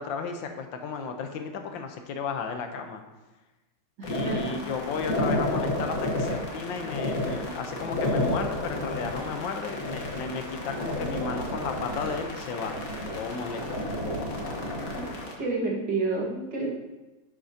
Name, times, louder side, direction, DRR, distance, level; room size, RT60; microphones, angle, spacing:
voice 1, 0.0-3.0 4.1-12.8 13.1-13.9, left 5 dB, 80° left, 5 dB, 1.5 m, -34 dB
sound 1, 4.0-15.3, left 1 dB, 50° left, 1.6 m, -31 dB
voice 2, 4.0-4.6 11.0-11.1 15.0-15.1 15.4-16.7, right 3 dB, 65° right, -4 dB, 2.4 m, -30 dB
10.0 x 7.7 x 2.8 m, 1.1 s
omnidirectional pair, 2.0 m